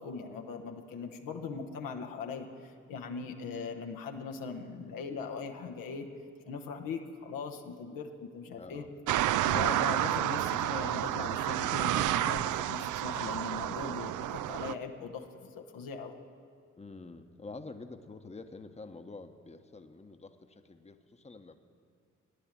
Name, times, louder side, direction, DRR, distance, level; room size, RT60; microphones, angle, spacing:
voice 1, 0.0-6.1 6.5-8.8 9.5-16.2, left 5 dB, 70° left, 4 dB, 1.1 m, -40 dB
voice 2, 8.6-8.9 16.8-21.5, left 3 dB, 20° left, 7 dB, 1.0 m, -47 dB
sound 1, 9.1-14.7, right 13 dB, 60° right, 0.5 m, -30 dB
15.0 x 10.0 x 7.5 m, 2.2 s
hypercardioid pair, 45°, 34 cm